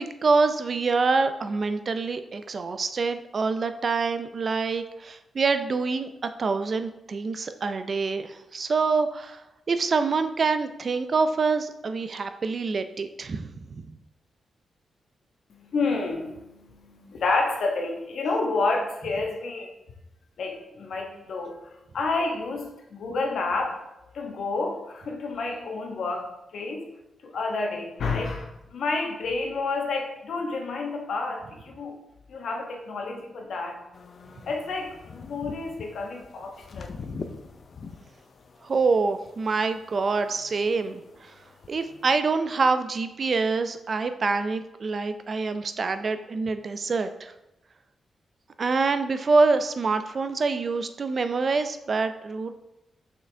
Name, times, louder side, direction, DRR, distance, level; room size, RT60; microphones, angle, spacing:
voice 1, 0.0-6.1 6.4-13.9 37.0-37.1 38.6-41.4 41.7-47.3 48.6-52.5, right 4 dB, 45° right, 9 dB, 0.4 m, -26 dB
voice 2, 15.5-19.7 20.4-23.8 24.1-26.9 27.2-32.0 32.3-33.8 34.5-36.9, left 3 dB, 70° left, 1 dB, 1.2 m, -30 dB
sound 1, 33.9-42.2, left 4 dB, 50° left, 0.6 m, -44 dB
6.1 x 5.7 x 3.4 m, 0.91 s
wide cardioid pair, 115°, 0 cm